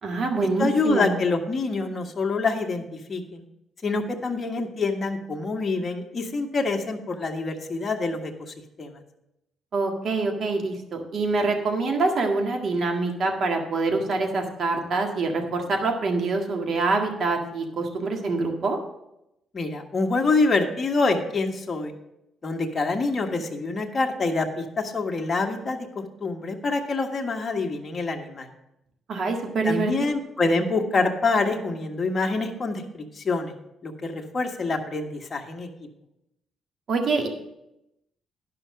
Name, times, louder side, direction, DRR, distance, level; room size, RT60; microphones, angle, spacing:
voice 1, 0.0-1.2 9.7-18.8 29.1-29.9 36.9-37.3, right 3 dB, 55° right, 3 dB, 1.8 m, -25 dB
voice 2, 0.6-2.8 3.1-3.4 3.8-9.0 19.5-21.9 22.4-28.5 29.6-33.5 33.8-35.7, left 3 dB, 35° left, 2 dB, 1.5 m, -26 dB
11.5 x 5.7 x 6.3 m, 0.85 s
cardioid pair, 90°, 0 cm